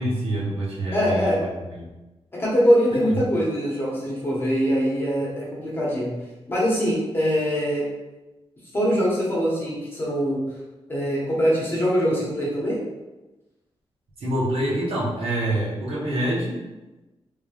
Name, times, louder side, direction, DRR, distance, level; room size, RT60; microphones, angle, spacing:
voice 1, 0.0-1.9 14.2-16.6, right 1 dB, 65° right, -5 dB, 1.0 m, -26 dB
voice 2, 0.9-1.4 2.4-6.1 6.5-7.8 8.7-10.4 10.9-12.8, equal, 20° left, -6 dB, 0.9 m, -23 dB
3.4 x 3.2 x 2.3 m, 1.1 s
wide cardioid pair, 175°, 10 cm